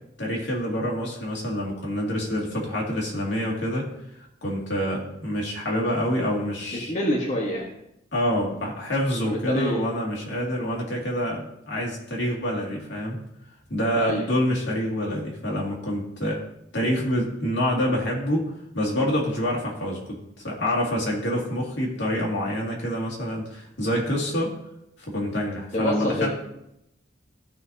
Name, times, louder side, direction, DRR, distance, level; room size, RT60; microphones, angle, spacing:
voice 1, 0.2-3.9 4.4-6.9 8.1-13.2 13.7-16.4 16.7-24.6 25.0-26.3, equal, 70° left, -2 dB, 2.3 m, -27 dB
voice 2, 6.9-7.6 9.2-9.8 14.0-14.3 25.7-26.3, equal, 40° left, -3 dB, 1.3 m, -26 dB
15.0 x 5.8 x 2.7 m, 0.82 s
head